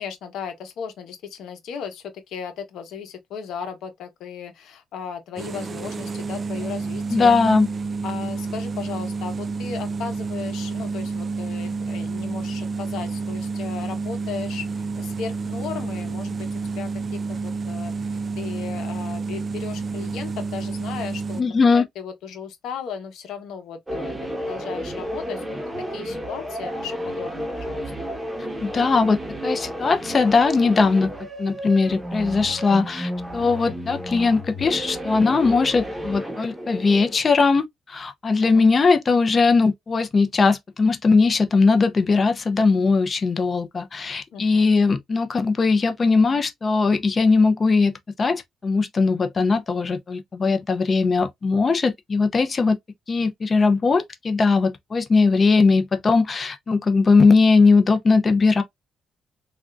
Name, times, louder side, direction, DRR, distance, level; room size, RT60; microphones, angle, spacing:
voice 1, 0.0-7.4 8.0-27.8 38.4-38.6 44.3-44.7, left 7 dB, 80° left, 0.9 m, -36 dB
sound 1, 5.4-21.4, right 4 dB, 40° right, 0.3 m, -29 dB
voice 2, 7.1-7.7 21.4-21.8 28.6-31.1 31.4-52.8 53.1-58.6, left 4 dB, 35° left, 0.5 m, -19 dB
sound 2, 23.9-37.2, equal, 10° right, 1.0 m, -32 dB
3.4 x 2.4 x 2.4 m
cardioid pair, 90°, 0 cm